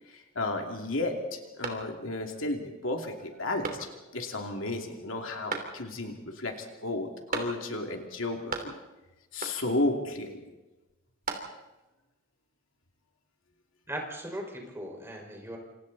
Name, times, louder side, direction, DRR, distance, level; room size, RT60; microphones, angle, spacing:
voice 1, 0.1-8.8 9.3-10.4, left 2 dB, 70° left, 3 dB, 2.8 m, -33 dB
sound 1, 1.6-2.3 2.7-2.8 3.6-4.2 5.5-6.1 7.3-9.0 9.4-9.9 10.9-11.8, right 4 dB, 45° right, 3.4 m, -38 dB
voice 2, 13.9-15.6, right 1 dB, 15° right, 1 dB, 5.3 m, -38 dB
27.5 x 27.5 x 4.2 m, 1.1 s
head